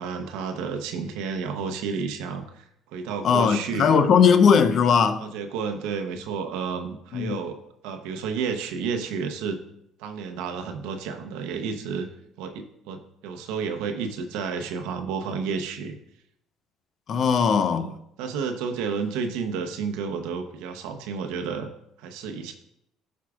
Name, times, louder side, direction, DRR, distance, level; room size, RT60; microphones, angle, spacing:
voice 1, 0.0-4.0 5.2-7.6 7.8-9.6 10.0-12.1 12.4-16.0 17.7-17.9 18.2-21.7 22.0-22.5, right 5 dB, 85° right, 0.8 m, -31 dB
voice 2, 3.2-5.2 7.1-7.3 17.1-17.9, left 6 dB, 55° left, 0.8 m, -19 dB
13.5 x 4.7 x 2.4 m
supercardioid pair, 85°, 0 cm